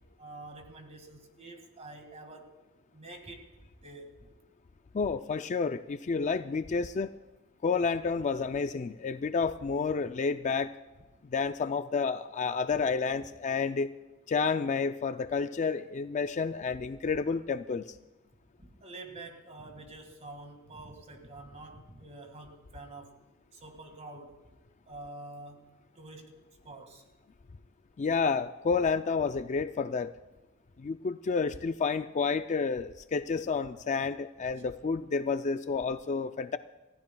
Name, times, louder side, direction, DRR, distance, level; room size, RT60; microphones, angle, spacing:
voice 1, 0.2-2.6 2.9-3.5 3.8-4.1 18.6-23.2 23.5-24.4 24.9-26.4 26.6-27.0, right 2 dB, 30° right, 5 dB, 1.9 m, -47 dB
voice 2, 4.9-7.1 7.6-10.7 11.3-13.9 14.3-17.8 28.0-30.1 30.8-36.6, left 5 dB, 35° left, 10 dB, 0.4 m, -30 dB
29.0 x 15.0 x 2.3 m, 1.1 s
head